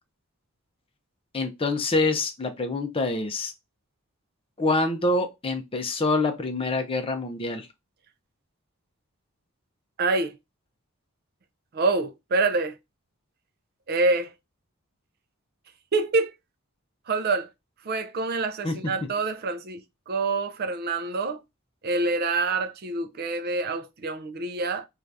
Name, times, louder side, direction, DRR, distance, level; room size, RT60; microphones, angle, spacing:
voice 1, 1.3-3.5 4.6-7.7 18.6-18.9, left 2 dB, 25° left, 0.5 m, -26 dB
voice 2, 10.0-10.4 11.7-12.7 13.9-14.3 15.9-16.3 17.1-17.5 17.9-19.8 20.1-21.4 21.8-24.9, right 3 dB, 45° right, 0.4 m, -26 dB
2.7 x 2.4 x 3.3 m
head